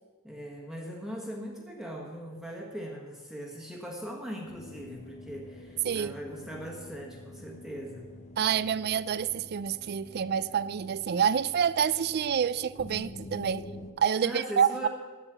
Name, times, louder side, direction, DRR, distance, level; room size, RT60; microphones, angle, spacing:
voice 1, 0.2-8.1 14.2-14.9, equal, ahead, 1.3 m, -40 dB
sound 1, 4.4-13.9, left 1 dB, 35° left, 0.7 m, -47 dB
voice 2, 8.4-13.6 14.0-14.9, right 8 dB, 50° right, 0.4 m, -27 dB
9.8 x 8.2 x 8.0 m
head